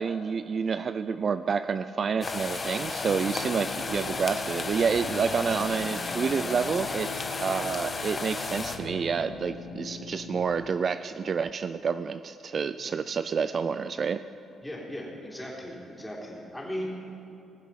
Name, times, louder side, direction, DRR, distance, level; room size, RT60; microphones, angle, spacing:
voice 1, 0.0-14.2, right 6 dB, 45° right, 12 dB, 0.3 m, -29 dB
sound 1, 2.2-8.8, left 3 dB, 35° left, 1.1 m, -33 dB
sound 2, 3.0-10.4, left 5 dB, 80° left, 1.2 m, -42 dB
voice 2, 14.6-16.8, equal, 5° left, -4 dB, 3.5 m, -37 dB
20.0 x 7.3 x 5.7 m, 2.8 s
cardioid pair, 90°, 0 cm